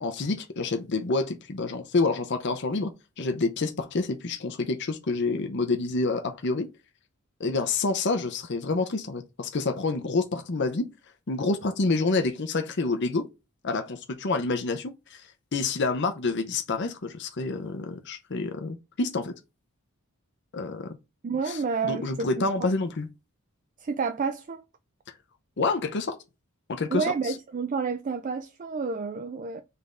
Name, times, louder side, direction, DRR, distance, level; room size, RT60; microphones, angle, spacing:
voice 1, 0.0-2.9 3.2-6.7 7.4-10.9 11.3-13.2 13.6-19.3 20.5-21.0 21.4-23.1 25.6-26.2 26.7-27.3, left 3 dB, 50° left, 0.6 m, -28 dB
voice 2, 21.2-22.4 23.8-24.6 26.9-29.6, right 5 dB, 35° right, 0.3 m, -30 dB
4.1 x 3.4 x 3.7 m
head